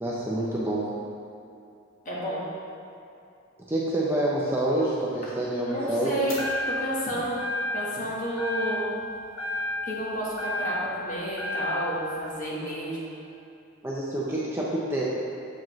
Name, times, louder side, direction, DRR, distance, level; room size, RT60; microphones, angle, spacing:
voice 1, 0.0-0.9 3.7-6.2 13.8-15.0, right 1 dB, 10° right, -6 dB, 0.5 m, -27 dB
voice 2, 2.0-2.4 5.2-5.3 5.6-6.4 6.7-7.4 7.7-8.8 9.8-13.1, right 1 dB, 35° left, -6 dB, 1.3 m, -31 dB
sound 1, 6.3-7.0 7.4-8.0 8.4-9.1 9.4-11.0 11.4-12.0, left 2 dB, 65° left, 1.3 m, -31 dB
7.3 x 5.0 x 3.1 m, 2.6 s
head